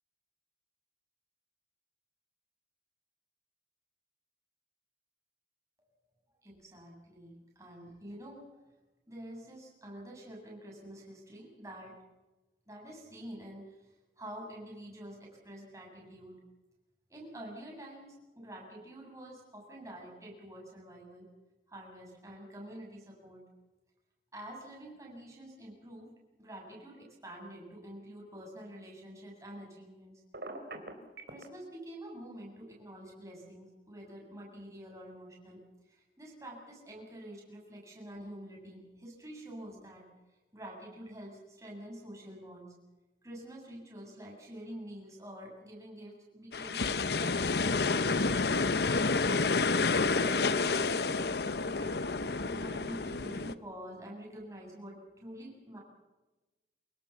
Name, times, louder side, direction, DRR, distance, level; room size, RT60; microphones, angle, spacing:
voice 1, 6.4-8.6 9.1-11.9 12.7-13.7 14.2-16.4 17.1-21.3 21.7-23.4 24.3-26.1 26.4-30.1 31.3-35.6 35.9-40.0 40.5-42.8 43.2-48.7 49.1-49.2 50.0-52.0 52.4-55.8, right 1 dB, 20° right, -2 dB, 7.8 m, -47 dB
Telephone, 30.3-31.4, right 2 dB, 65° right, 4.0 m, -42 dB
sound 1, 46.5-53.5, left 4 dB, 65° left, 0.8 m, -29 dB
28.5 x 18.5 x 7.3 m, 1.1 s
head